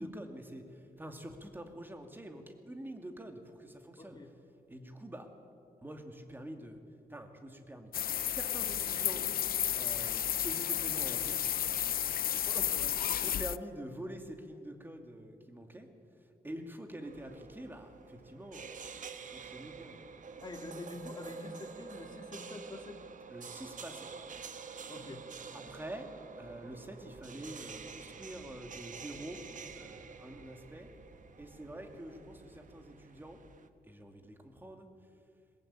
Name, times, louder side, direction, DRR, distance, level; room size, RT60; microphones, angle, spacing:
voice 1, 0.0-4.2 4.7-5.3 5.8-6.8 7.1-7.9 8.2-9.2 9.7-11.5 12.4-15.9 16.4-18.7 19.3-20.0 23.3-24.1 25.5-26.1 26.4-29.4 29.7-30.9 31.4-33.4 33.9-34.9, right 1 dB, 15° right, 5 dB, 2.3 m, -46 dB
voice 2, 4.0-4.3 12.8-12.9 20.4-23.0 24.9-25.3, left 2 dB, 25° left, 5 dB, 2.2 m, -46 dB
sound 1, 7.9-13.6, left 10 dB, 70° left, 0.5 m, -32 dB
sound 2, 17.0-33.7, right 5 dB, 55° right, 1.2 m, -48 dB
22.0 x 20.5 x 8.8 m, 2.5 s
wide cardioid pair, 140°, 16 cm